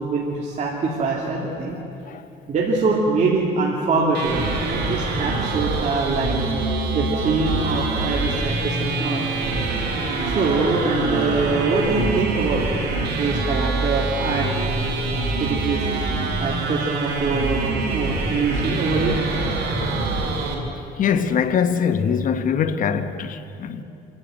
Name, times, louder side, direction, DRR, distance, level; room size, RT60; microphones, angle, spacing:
voice 1, 0.0-1.8 2.5-9.2 10.2-12.7 13.2-14.7 15.4-15.8 16.4-17.6 17.9-19.2, right 3 dB, 45° right, 2.8 m, -24 dB
sound 1, 4.1-20.5, right 3 dB, 75° right, 4.4 m, -25 dB
Bowed string instrument, 8.8-12.9, right 2 dB, 25° right, 2.3 m, -33 dB
voice 2, 21.0-23.8, left 7 dB, 50° left, 1.2 m, -22 dB
27.0 x 12.0 x 9.2 m
cardioid pair, 110°, 17 cm